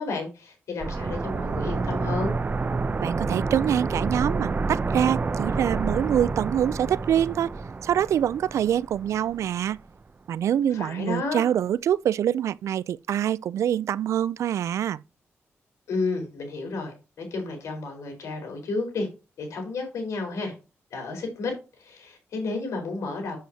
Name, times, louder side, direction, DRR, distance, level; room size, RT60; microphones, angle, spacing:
voice 1, 0.0-2.3 10.7-11.4 15.9-19.1 19.4-20.5 20.9-23.4, left 3 dB, 85° left, 4.1 m, -31 dB
sound 1, 0.8-9.5 9.8-9.9, right 3 dB, 35° right, 0.6 m, -29 dB
voice 2, 3.0-7.5 7.8-9.8 10.3-15.0, right 10 dB, 80° right, 0.3 m, -25 dB
8.3 x 7.7 x 2.8 m
cardioid pair, 80°, 5 cm